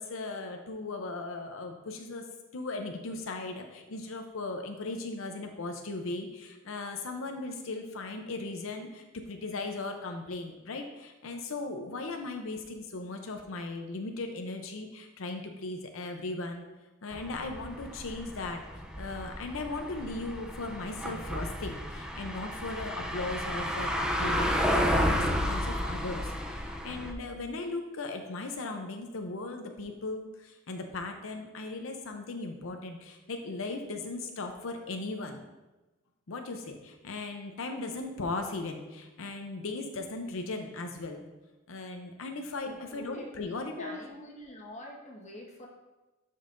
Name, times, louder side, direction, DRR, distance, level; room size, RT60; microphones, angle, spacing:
voice 1, 0.0-2.3 2.5-16.6 17.0-35.4 36.3-41.2 41.7-44.0, left 3 dB, 90° left, 4 dB, 0.7 m, -37 dB
sound 1, 17.1-27.1, equal, 5° right, 0.5 m, -32 dB
voice 2, 42.6-45.7, equal, 35° left, -1 dB, 1.4 m, -46 dB
12.0 x 5.4 x 2.6 m, 1.1 s
head